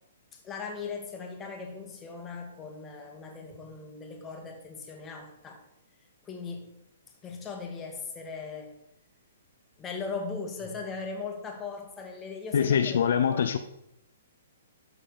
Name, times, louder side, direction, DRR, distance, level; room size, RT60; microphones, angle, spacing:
voice 1, 0.3-5.7 6.2-6.8 7.2-8.7 9.8-13.0 13.3-13.6, left 4 dB, 20° left, 3 dB, 1.9 m, -39 dB
voice 2, 12.5-13.6, left 8 dB, 65° left, 9 dB, 0.6 m, -24 dB
13.0 x 4.3 x 5.3 m, 0.81 s
hypercardioid pair, 130°, 0 cm